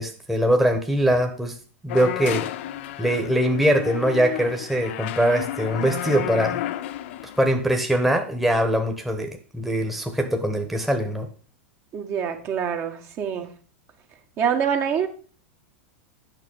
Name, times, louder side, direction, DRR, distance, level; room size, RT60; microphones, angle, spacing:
voice 1, 0.0-1.6 1.8-2.5 3.0-6.6 7.4-11.3, equal, 5° right, 4 dB, 1.2 m, -22 dB
sound 1, 1.9-7.6, left 13 dB, 65° left, 0.6 m, -32 dB
voice 2, 11.9-13.5 14.4-15.1, right 7 dB, 40° right, 4 dB, 1.5 m, -25 dB
9.0 x 5.9 x 5.5 m, 0.41 s
hypercardioid pair, 100°, 7 cm